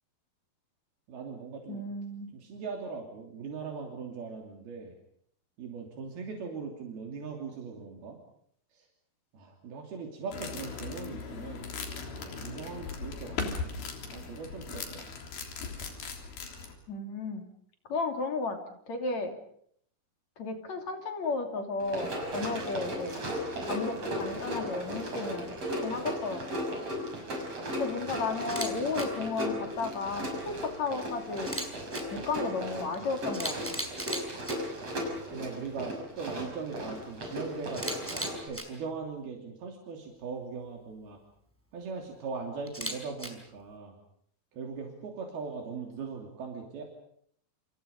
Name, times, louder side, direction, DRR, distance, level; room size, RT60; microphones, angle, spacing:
voice 1, 1.1-1.9 2.3-4.9 5.6-8.2 8.7-8.9 9.3-11.7 12.2-13.6 14.1-15.1 28.0-28.2 35.1-41.2 41.7-44.0 44.5-46.8, right 5 dB, 80° right, 1 dB, 5.0 m, -40 dB
voice 2, 1.7-2.3 16.9-17.4 17.9-18.6 18.9-19.4 20.4-23.3 23.7-25.5 25.8-26.6 27.7-31.5 32.1-33.8, left 4 dB, 50° left, 4 dB, 4.1 m, -34 dB
sound 1, 10.3-16.8, left 4 dB, 75° left, 5.3 m, -38 dB
Run, 21.8-38.5, equal, 40° right, 7.3 m, -36 dB
Camera, 28.4-28.7 28.9-29.0 31.4-32.0 32.9-33.0 33.3-34.5 37.7-38.6 42.7-43.3, equal, 5° right, 4.3 m, -36 dB
29.5 x 28.0 x 5.4 m, 0.66 s
omnidirectional pair, 4.4 m